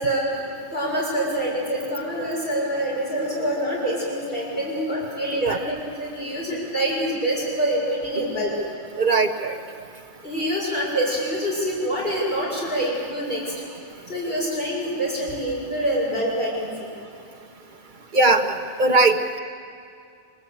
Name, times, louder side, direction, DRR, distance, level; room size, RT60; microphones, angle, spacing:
voice 1, 0.0-8.5 10.2-13.5 14.1-16.9, right 1 dB, 45° left, -5 dB, 6.3 m, -26 dB
voice 2, 9.0-9.6 18.1-19.4, right 3 dB, 40° right, 5 dB, 1.4 m, -20 dB
24.5 x 21.5 x 8.3 m, 2.4 s
omnidirectional pair, 1.3 m